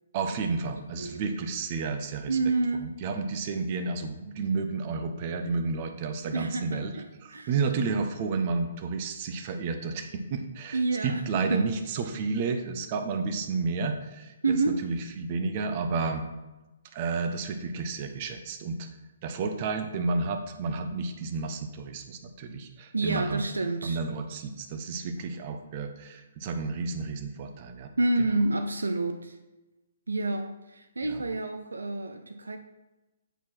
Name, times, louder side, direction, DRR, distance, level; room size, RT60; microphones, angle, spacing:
voice 1, 0.1-2.4 2.7-14.6 14.8-16.2 16.9-18.9 19.2-23.4 23.8-27.9 28.2-28.3 31.0-31.2, right 4 dB, 40° right, 6 dB, 0.8 m, -31 dB
voice 2, 1.0-1.3 2.3-2.9 6.3-7.0 7.3-7.5 10.7-11.7 14.4-14.8 22.9-24.0 28.0-29.3 30.1-32.6, right 2 dB, 80° right, 8 dB, 0.5 m, -28 dB
8.0 x 4.7 x 4.4 m, 1.1 s
figure-of-eight pair, 130°, 0 cm